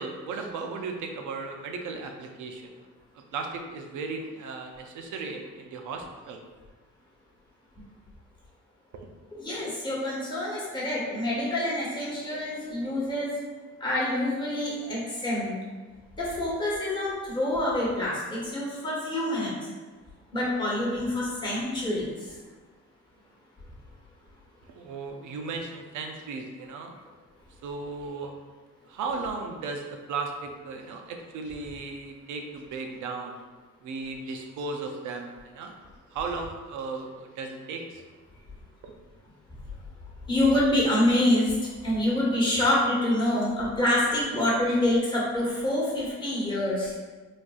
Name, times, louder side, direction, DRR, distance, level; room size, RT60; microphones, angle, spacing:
voice 1, 0.0-2.9 3.3-6.4 24.8-26.9 27.6-28.3 28.8-29.8 30.1-33.4 33.8-35.7 36.1-38.0 38.8-38.9, right 4 dB, 80° right, 3 dB, 0.5 m, -36 dB
voice 2, 9.4-13.3 13.8-15.6 16.2-19.7 20.3-22.4 40.2-46.9, left 1 dB, 15° left, -6 dB, 1.3 m, -26 dB
4.1 x 2.4 x 2.3 m, 1.3 s
cardioid pair, 90°, 30 cm